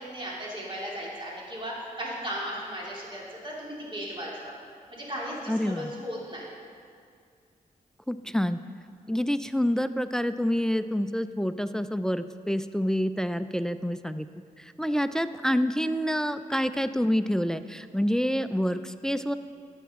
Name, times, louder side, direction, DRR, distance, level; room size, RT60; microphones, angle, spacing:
voice 1, 0.0-4.5 4.9-6.5, equal, 35° right, -4 dB, 2.5 m, -36 dB
voice 2, 5.5-5.9 8.1-8.6 9.1-14.3 14.6-19.3, equal, 5° left, 12 dB, 0.3 m, -27 dB
11.5 x 7.2 x 3.6 m, 2.2 s
cardioid pair, 65°, 14 cm